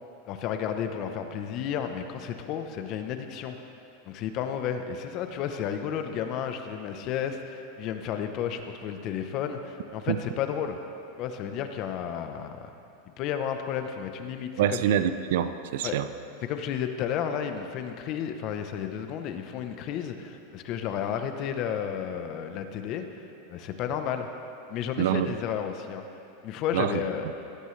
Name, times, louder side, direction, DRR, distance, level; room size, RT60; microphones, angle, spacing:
voice 1, 0.3-3.5 4.0-10.8 11.2-12.7 13.2-14.8 15.8-16.0 16.4-23.2 23.5-24.3 24.7-26.0 26.4-27.3, left 8 dB, 40° left, 7 dB, 0.9 m, -32 dB
voice 2, 14.6-16.1 25.0-25.3 26.7-26.9, right 10 dB, 70° right, 11 dB, 0.6 m, -25 dB
16.5 x 12.0 x 3.3 m, 2.7 s
supercardioid pair, 140°, 0 cm